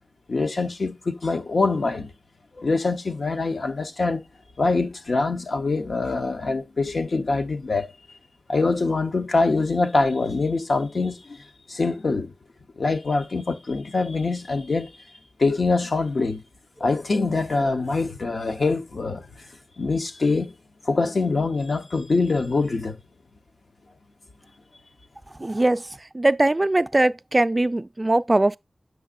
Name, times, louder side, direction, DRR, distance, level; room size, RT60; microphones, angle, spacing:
voice 1, 0.3-2.1 2.5-4.2 4.6-7.9 8.5-12.3 12.8-15.0 15.4-16.4 16.8-19.3 19.8-20.5 20.8-23.0, left 3 dB, 75° left, 0.9 m, -24 dB
voice 2, 25.4-25.8 26.1-28.6, right 2 dB, 30° right, 0.3 m, -20 dB
7.9 x 5.9 x 2.5 m
wide cardioid pair, 70°, 0 cm